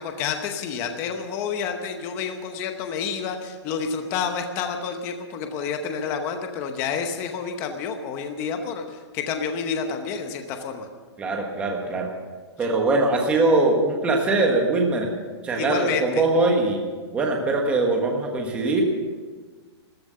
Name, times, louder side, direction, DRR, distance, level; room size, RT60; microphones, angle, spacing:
voice 1, 0.0-10.9 15.5-16.2, left 6 dB, 15° left, 6 dB, 0.8 m, -29 dB
voice 2, 11.2-12.1 12.6-15.1 15.4-16.8 17.1-18.8, right 2 dB, 10° right, 1 dB, 1.4 m, -22 dB
14.0 x 13.0 x 6.8 m, 1.4 s
hypercardioid pair, 180°, 14 cm